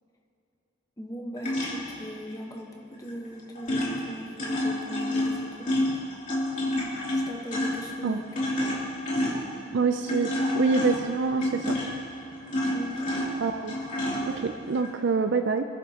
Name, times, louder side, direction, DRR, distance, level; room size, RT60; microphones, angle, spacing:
voice 1, 1.0-5.7 7.1-8.5 12.7-13.1, equal, 20° left, 1 dB, 1.1 m, -39 dB
Bathtub-Drain, 1.4-2.1 3.1-3.3 3.6-14.9, left 1 dB, 40° left, 3.0 m, -29 dB
voice 2, 9.7-11.8 13.4-13.7 14.3-15.7, right 4 dB, 60° right, 7 dB, 0.4 m, -26 dB
24.5 x 11.0 x 2.9 m, 2.7 s
head